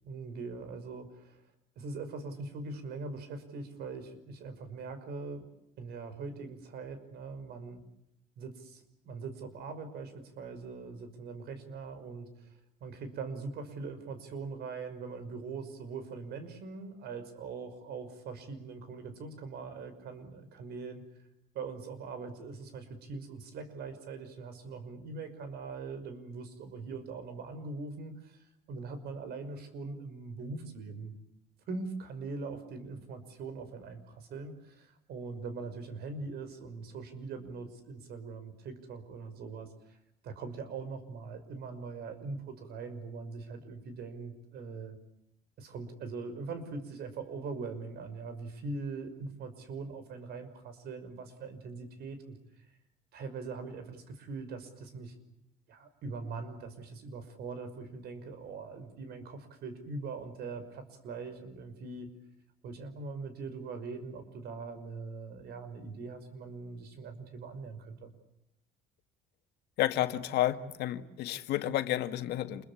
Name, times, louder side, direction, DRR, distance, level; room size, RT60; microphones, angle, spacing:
voice 1, 0.0-1.4 1.8-5.5 5.8-7.8 8.4-12.5 12.8-21.0 21.5-31.1 31.7-40.0 40.2-45.0 45.6-52.4 53.1-55.1 55.7-62.1 62.6-68.1, right 4 dB, 70° right, 10 dB, 5.8 m, -42 dB
voice 2, 69.8-72.6, left 13 dB, 80° left, 9 dB, 1.8 m, -31 dB
28.5 x 22.5 x 8.4 m, 0.79 s
cardioid pair, 110°, 17 cm